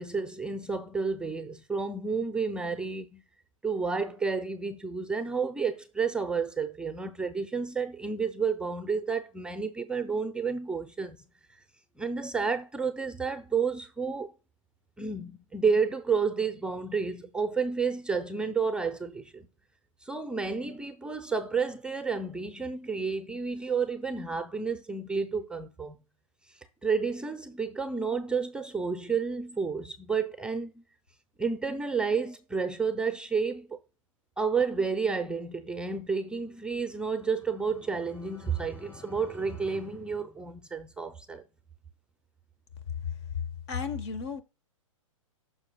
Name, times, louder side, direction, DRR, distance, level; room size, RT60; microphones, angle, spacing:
voice 1, 0.0-3.2 3.6-11.2 12.0-14.3 15.0-19.5 20.0-26.0 26.8-30.8 31.4-33.8 34.4-41.4, right 5 dB, 5° right, 0.6 m, -30 dB
sound 1, 36.4-40.9, left 2 dB, 15° left, 4.1 m, -51 dB
voice 2, 43.7-44.4, left 5 dB, 55° left, 1.2 m, -33 dB
14.5 x 6.2 x 2.3 m
hypercardioid pair, 120°, 17 cm